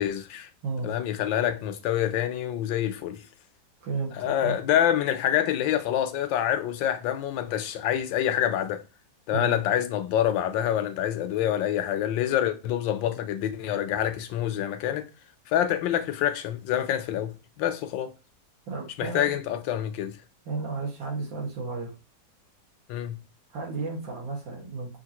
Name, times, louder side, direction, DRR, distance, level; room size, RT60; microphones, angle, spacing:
voice 1, 0.0-0.5 0.8-3.2 4.2-8.8 9.3-15.1 15.5-18.1 19.0-20.2 22.9-23.2, left 11 dB, 90° left, 1.4 m, -26 dB
voice 2, 0.6-0.9 3.8-4.6 9.3-9.6 18.7-19.3 20.5-21.9 23.5-25.0, right 4 dB, 85° right, 2.3 m, -33 dB
5.7 x 2.8 x 2.9 m
omnidirectional pair, 2.0 m